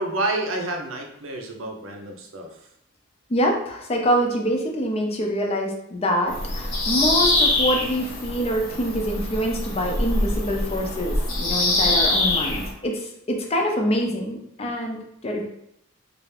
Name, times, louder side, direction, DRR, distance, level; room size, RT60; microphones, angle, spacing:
voice 1, 0.0-2.6, right 2 dB, 75° right, 1 dB, 0.6 m, -29 dB
voice 2, 3.3-15.4, equal, 30° left, 1 dB, 0.5 m, -25 dB
Bird vocalization bird call bird song, 6.3-12.7, left 2 dB, 65° left, 0.9 m, -24 dB
3.3 x 2.4 x 3.2 m, 0.76 s
head